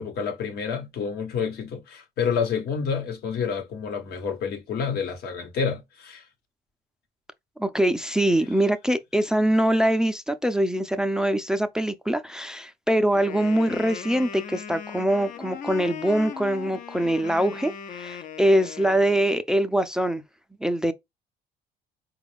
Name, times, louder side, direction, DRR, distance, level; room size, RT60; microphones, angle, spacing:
voice 1, 0.0-6.2, left 6 dB, 65° left, 1.2 m, -29 dB
voice 2, 7.6-20.2 20.6-20.9, right 1 dB, 5° right, 0.4 m, -23 dB
Wind instrument woodwind instrument, 13.1-19.4, left 7 dB, 50° left, 0.6 m, -38 dB
4.4 x 2.3 x 3.3 m
cardioid pair, 110°, 17 cm